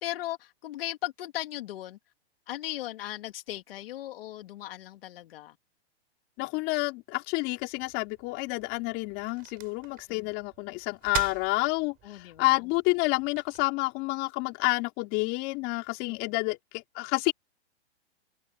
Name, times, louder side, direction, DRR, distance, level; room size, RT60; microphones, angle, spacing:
voice 1, 0.0-2.0 2.5-5.5 10.1-10.3 12.0-12.6 16.1-16.2, left 14 dB, 60° left, 2.3 m, -37 dB
voice 2, 6.4-17.3, left 26 dB, 35° left, 4.0 m, -29 dB
sound 1, 7.6-13.6, right 14 dB, 25° right, 5.9 m, -43 dB
hypercardioid pair, 145°, 32 cm